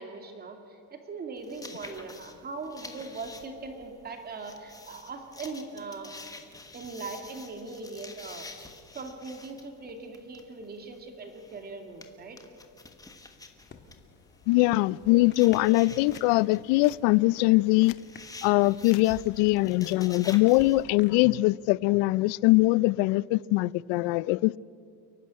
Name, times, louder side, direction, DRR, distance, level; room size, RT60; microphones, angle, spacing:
voice 1, 0.0-6.2 6.7-8.5 8.9-12.4, right 3 dB, 25° right, 2.4 m, -40 dB
sound 1, 1.4-20.8, left 3 dB, 10° left, 1.3 m, -49 dB
sound 2, 13.6-21.1, left 5 dB, 25° left, 1.5 m, -54 dB
voice 2, 14.5-17.9 18.4-24.6, left 20 dB, 80° left, 0.6 m, -22 dB
sound 3, 16.0-16.3 16.8-17.0 17.6-18.1 18.8-19.1 20.4-20.7, left 16 dB, 55° left, 0.8 m, -47 dB
29.5 x 11.5 x 9.6 m
cardioid pair, 165°, 41 cm